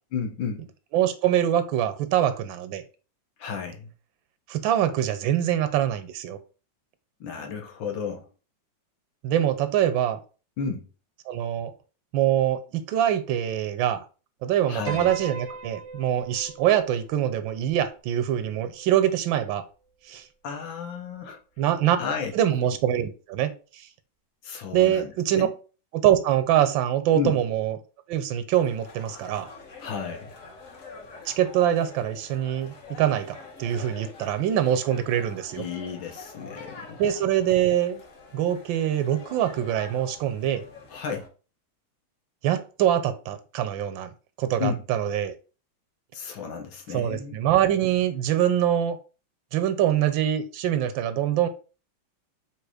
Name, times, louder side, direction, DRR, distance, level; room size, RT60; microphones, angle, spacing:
voice 1, 0.1-0.6 3.4-3.9 7.2-8.3 10.6-10.9 14.7-15.1 20.4-21.4 22.0-22.3 24.4-25.5 27.1-27.4 29.8-30.3 35.6-37.0 40.9-41.2 44.6-44.8 46.1-47.4, left 6 dB, 80° left, 1.7 m, -32 dB
voice 2, 0.9-2.8 4.5-6.4 9.2-10.2 11.3-11.7 12.1-14.0 14.4-19.6 20.1-20.2 21.6-22.0 22.3-23.9 24.7-25.5 25.9-27.8 28.1-29.5 31.3-35.6 37.0-38.0 38.3-40.6 42.4-44.1 44.4-45.3 46.9-49.0 49.5-51.5, right 11 dB, 80° right, 1.3 m, -24 dB
Piano, 14.9-19.3, right 3 dB, 5° left, 0.5 m, -40 dB
sound 1, 28.6-41.3, left 4 dB, 45° left, 1.3 m, -45 dB
3.9 x 2.8 x 4.8 m
omnidirectional pair, 2.1 m